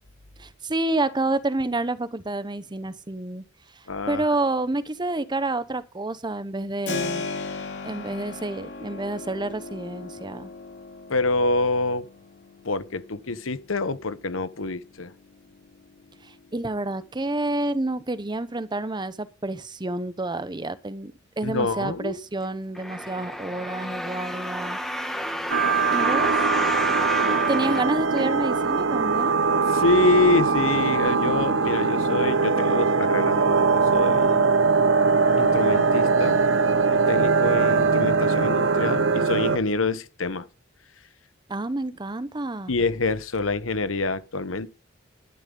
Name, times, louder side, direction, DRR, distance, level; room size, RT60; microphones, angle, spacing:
voice 1, 0.4-3.4 4.1-7.2 7.8-10.5 16.2-24.8 25.9-26.4 26.9-27.0 27.5-29.4 41.5-42.7, right 2 dB, 20° right, 0.8 m, -29 dB
voice 2, 3.9-4.2 11.1-12.0 12.6-15.1 21.4-22.2 29.7-34.5 35.4-36.4 36.9-40.5 42.7-44.7, left 3 dB, 80° left, 1.1 m, -26 dB
Keyboard (musical), 6.9-17.5, left 3 dB, 60° left, 2.9 m, -38 dB
sound 1, 22.7-28.7 29.3-29.4, equal, ahead, 1.8 m, -30 dB
sound 2, 25.5-39.6, right 4 dB, 65° right, 1.0 m, -21 dB
12.0 x 11.0 x 3.9 m
head